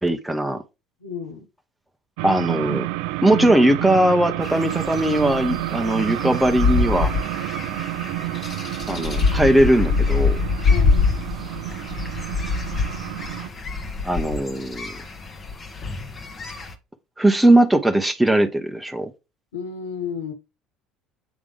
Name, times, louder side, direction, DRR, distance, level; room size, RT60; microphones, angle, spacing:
voice 1, 0.0-0.6 2.2-2.9 3.2-7.1 8.9-10.4 14.0-14.9 17.2-19.1, right 1 dB, 5° right, 1.0 m, -19 dB
voice 2, 1.0-1.5 10.7-11.0 19.5-20.3, left 6 dB, 80° left, 1.1 m, -32 dB
sound 1, 2.2-13.5, right 19 dB, 70° right, 0.3 m, -29 dB
sound 2, 4.4-16.7, left 4 dB, 30° left, 1.4 m, -25 dB
8.2 x 3.3 x 3.5 m
hypercardioid pair, 65°, 0 cm